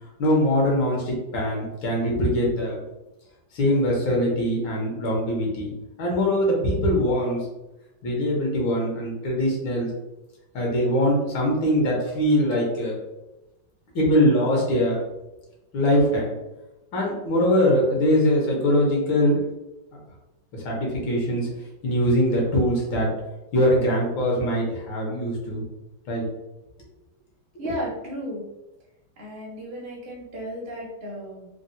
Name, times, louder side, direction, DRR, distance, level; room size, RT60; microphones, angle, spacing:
voice 1, 0.2-2.8 3.5-5.7 6.0-7.5 8.0-9.9 10.5-13.0 14.0-15.0 15.7-16.3 16.9-19.4 20.6-21.5 21.8-23.1 23.5-25.6 26.1-26.2, equal, 75° left, -2 dB, 1.6 m, -22 dB
voice 2, 27.6-28.4 29.2-31.5, equal, 50° right, -3 dB, 0.6 m, -34 dB
3.9 x 2.1 x 2.6 m, 0.99 s
omnidirectional pair, 2.2 m